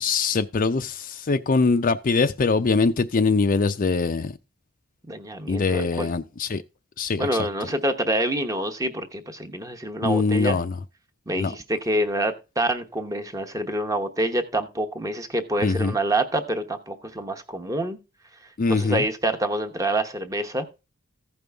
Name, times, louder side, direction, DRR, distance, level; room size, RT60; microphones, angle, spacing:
voice 1, 0.0-4.4 5.5-6.6 7.0-7.3 10.0-10.7 11.4-11.5 15.6-16.0 18.6-19.0, left 4 dB, 40° left, 0.5 m, -22 dB
voice 2, 5.1-6.1 7.2-10.6 11.3-18.0 18.7-20.7, right 1 dB, 15° right, 0.9 m, -26 dB
15.0 x 5.4 x 3.4 m
head